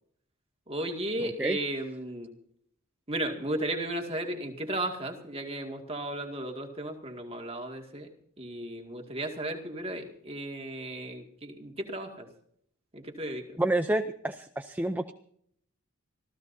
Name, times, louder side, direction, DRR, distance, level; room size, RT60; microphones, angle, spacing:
voice 1, 0.7-2.3 3.1-8.1 8.4-12.3 12.9-13.6, right 1 dB, 25° right, 3 dB, 2.3 m, -35 dB
voice 2, 13.6-15.1, right 1 dB, 10° right, 7 dB, 0.5 m, -28 dB
26.0 x 15.5 x 2.8 m, 0.65 s
head